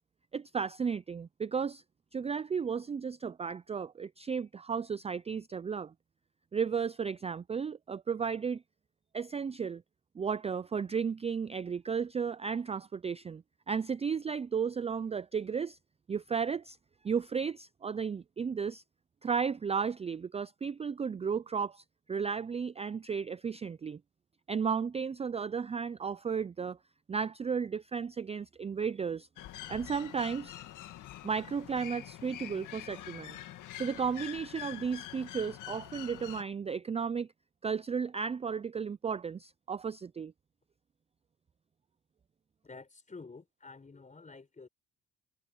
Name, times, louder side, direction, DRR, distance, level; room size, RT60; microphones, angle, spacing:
voice 1, 0.3-1.8 2.1-5.9 6.5-8.6 9.1-9.8 10.2-15.8 16.1-16.8 17.0-18.8 19.2-24.0 24.5-26.8 27.1-29.3 29.7-30.5 31.2-33.4 33.8-37.3 37.6-40.3, right 6 dB, 20° right, 0.4 m, -34 dB
sound 1, 29.4-36.4, left 13 dB, 85° left, 2.1 m, -45 dB
voice 2, 42.6-44.7, left 4 dB, 25° left, 4.6 m, -50 dB
cardioid pair, 90°, 30 cm